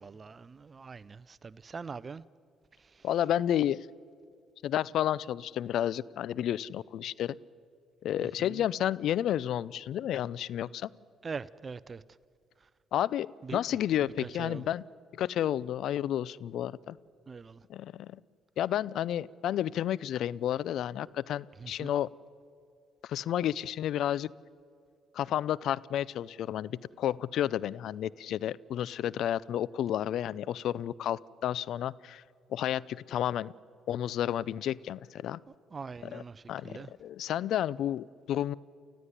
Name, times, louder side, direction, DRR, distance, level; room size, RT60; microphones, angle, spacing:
voice 1, 0.0-2.2 8.2-8.6 11.2-12.0 13.5-13.6 14.2-14.6 17.3-17.6 21.6-21.9 35.7-36.9, right 5 dB, 40° right, 18 dB, 0.6 m, -42 dB
voice 2, 3.0-3.9 4.6-7.4 8.0-10.9 12.9-14.8 15.1-17.0 17.7-18.2 18.6-22.1 23.0-24.3 25.1-32.2 32.5-33.5 33.9-35.4 36.0-36.2 36.5-38.5, left 11 dB, 70° left, 22 dB, 0.5 m, -31 dB
29.5 x 14.5 x 9.8 m, 2.3 s
supercardioid pair, 60°, 0 cm